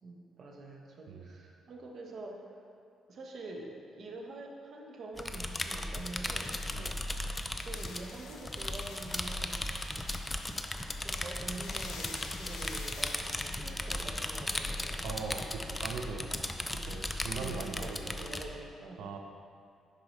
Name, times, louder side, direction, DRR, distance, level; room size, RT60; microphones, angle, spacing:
voice 1, 0.0-2.6 3.1-6.6 7.5-9.7 11.0-15.1 16.0-16.1 16.7-17.1 17.4-19.2, right 2 dB, 55° right, 0 dB, 1.1 m, -46 dB
sound 1, 5.2-18.4, left 1 dB, 15° left, 0.5 m, -37 dB
sound 2, 6.3-14.1, left 4 dB, 80° left, 0.8 m, -50 dB
voice 2, 15.0-16.3 16.7-18.1 19.0-19.2, right 5 dB, 85° right, 3 dB, 0.5 m, -40 dB
10.5 x 4.6 x 3.2 m, 2.4 s
cardioid pair, 90°, 0 cm